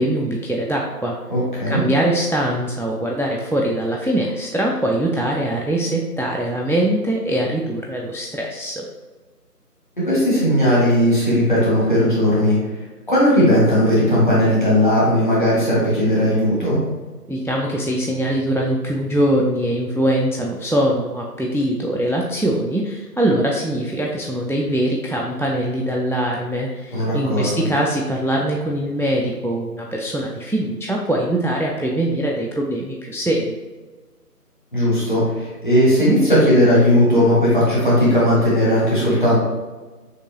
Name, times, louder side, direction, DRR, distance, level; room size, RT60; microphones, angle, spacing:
voice 1, 0.0-1.2 1.7-8.8 17.3-33.5, right 1 dB, 5° left, -2 dB, 0.3 m, -22 dB
voice 2, 1.3-1.8 10.0-12.6 13.1-16.8 26.9-27.5 34.7-39.3, equal, 30° left, -8 dB, 1.5 m, -17 dB
6.5 x 2.6 x 2.7 m, 1.3 s
figure-of-eight pair, 170°, 48 cm